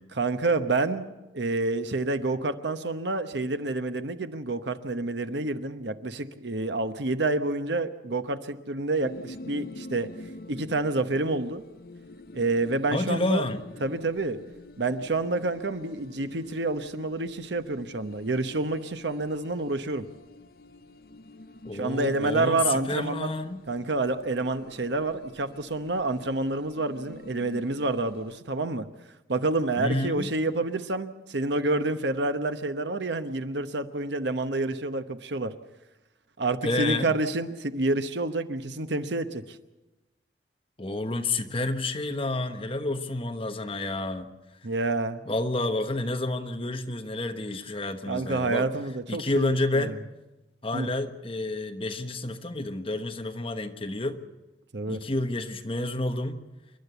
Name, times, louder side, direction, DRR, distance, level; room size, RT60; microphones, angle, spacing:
voice 1, 0.1-10.1 10.5-11.6 12.3-13.4 13.8-14.4 14.8-20.1 21.7-23.3 23.7-28.9 29.3-35.5 36.4-39.6 44.6-45.2 48.1-50.0 50.7-50.9 54.7-55.0, right 2 dB, 70° right, 10 dB, 1.0 m, -28 dB
sound 1, 9.0-28.4, left 2 dB, 50° left, 0.7 m, -47 dB
voice 2, 12.9-13.6 21.6-23.6 29.8-30.3 36.6-37.1 40.8-44.3 45.3-48.7 49.1-50.0 50.6-54.2 54.9-56.4, left 2 dB, 30° left, 6 dB, 1.2 m, -29 dB
28.0 x 12.0 x 8.2 m, 1.1 s
head